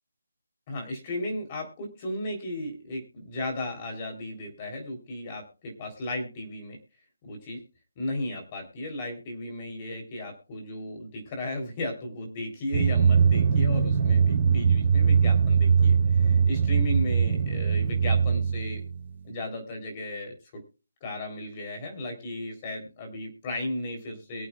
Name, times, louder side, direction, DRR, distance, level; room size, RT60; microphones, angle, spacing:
voice 1, 0.7-6.8 7.2-7.6 8.0-18.8 19.2-20.6 21.0-24.5, left 1 dB, 20° left, 2 dB, 3.7 m, -35 dB
Drum, 12.7-19.2, right 6 dB, 40° right, 4.7 m, -22 dB
23.0 x 8.4 x 2.4 m, 0.32 s
hypercardioid pair, 175°, 0 cm